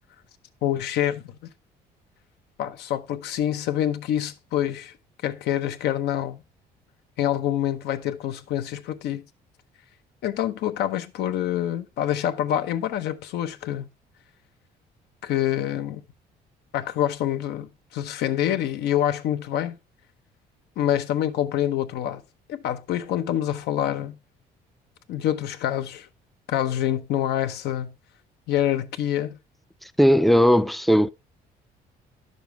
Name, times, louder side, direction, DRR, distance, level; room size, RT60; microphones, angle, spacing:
voice 1, 0.6-1.3 2.6-4.9 5.2-6.4 7.2-9.3 10.2-13.9 15.2-16.0 16.7-19.8 20.8-22.2 22.5-24.1 25.1-26.1 26.5-27.9 28.5-29.4, left 11 dB, 75° left, 0.9 m, -26 dB
voice 2, 30.0-31.1, equal, ahead, 0.4 m, -17 dB
10.5 x 6.8 x 3.4 m
cardioid pair, 110°, 17 cm